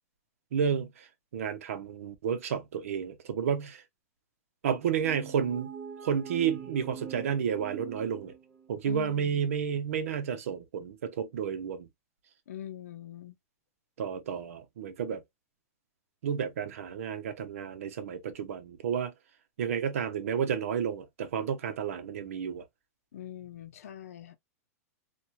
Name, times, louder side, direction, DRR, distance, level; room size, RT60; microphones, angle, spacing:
voice 1, 0.5-1.1 1.3-3.8 4.6-5.7 6.0-8.3 8.7-11.9 14.0-15.2 16.2-19.1 19.6-22.6, right 7 dB, 65° right, 0.8 m, -31 dB
sound 1, 5.0-8.8, right 7 dB, 15° right, 0.4 m, -43 dB
voice 2, 8.8-9.5 12.5-13.4 23.1-24.4, left 10 dB, 70° left, 0.6 m, -42 dB
3.0 x 2.3 x 2.6 m
supercardioid pair, 180°, 8 cm